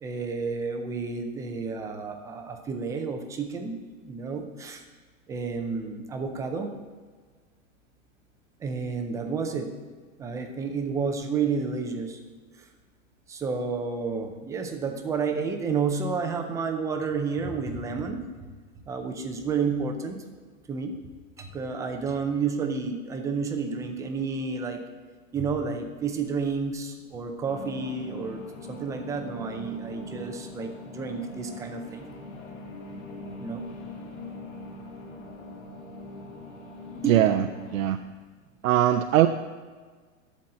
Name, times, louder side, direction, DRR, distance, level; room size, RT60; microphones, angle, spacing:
voice 1, 0.0-3.8 4.1-4.8 5.3-6.7 8.6-9.7 10.2-12.2 13.3-18.2 18.9-20.2 20.7-20.9 21.4-24.8 25.3-28.4 28.7-32.1 33.4-33.6 36.9-37.3, right 5 dB, 10° right, 4 dB, 0.4 m, -30 dB
sound 1, 27.5-37.9, left 2 dB, 80° left, 3.0 m, -41 dB
voice 2, 37.1-37.5 37.7-38.0 38.6-39.3, right 12 dB, 75° right, 7 dB, 0.6 m, -20 dB
11.5 x 4.1 x 7.6 m, 1.5 s
hypercardioid pair, 135°, 41 cm